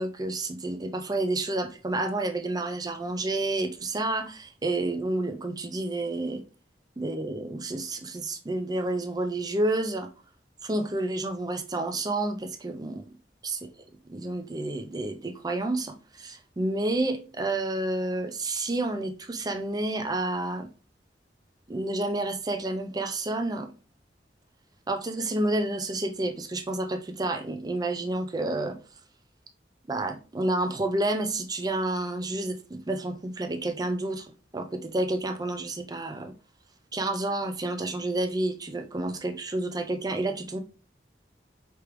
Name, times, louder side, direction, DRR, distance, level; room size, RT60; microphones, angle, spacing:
voice 1, 0.0-6.4 7.0-10.1 10.6-13.1 13.4-13.6 14.1-20.7 21.7-23.7 24.9-28.8 29.9-34.3 34.5-36.3 36.9-40.6, right 2 dB, 25° right, 0.5 m, -30 dB
4.8 x 3.4 x 3.0 m
head